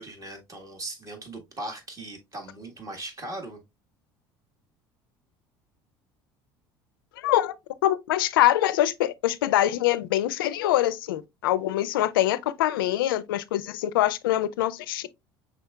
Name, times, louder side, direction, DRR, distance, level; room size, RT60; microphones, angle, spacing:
voice 1, 0.0-3.6, right 2 dB, 30° right, 1.5 m, -39 dB
voice 2, 7.2-7.6 7.8-15.1, left 13 dB, 80° left, 0.4 m, -24 dB
5.7 x 3.6 x 2.3 m
hypercardioid pair, 70°, 11 cm